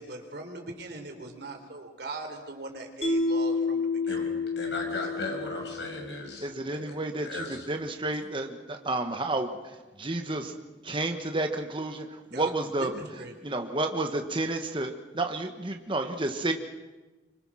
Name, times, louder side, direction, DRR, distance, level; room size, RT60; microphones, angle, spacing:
voice 1, 0.0-4.2 12.3-13.3, right 2 dB, 60° right, 4 dB, 3.9 m, -40 dB
Mallet percussion, 3.0-6.3, left 3 dB, 35° left, 3.8 m, -29 dB
voice 2, 4.5-6.8 7.2-7.7, left 2 dB, 70° left, 1 dB, 6.9 m, -36 dB
voice 3, 6.4-9.5 10.0-10.5 10.8-12.9 13.4-16.5, right 2 dB, 25° right, 5 dB, 1.4 m, -31 dB
25.5 x 25.5 x 6.3 m, 1.2 s
head